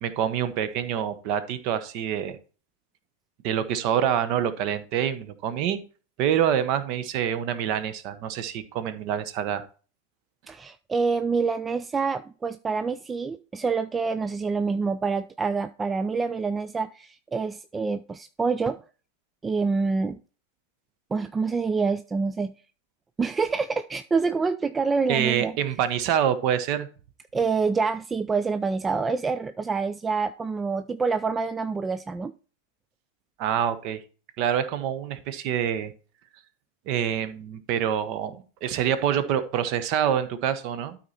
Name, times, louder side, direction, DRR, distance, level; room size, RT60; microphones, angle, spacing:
voice 1, 0.0-2.4 3.4-5.8 6.2-9.7 25.1-26.9 33.4-34.0 34.4-35.9 36.9-41.0, right 9 dB, 45° right, 1.0 m, -26 dB
voice 2, 10.5-18.8 19.4-20.2 21.1-22.5 23.2-25.5 27.3-32.3, right 4 dB, 15° right, 0.3 m, -26 dB
12.5 x 4.4 x 4.2 m
figure-of-eight pair, 90°, 0 cm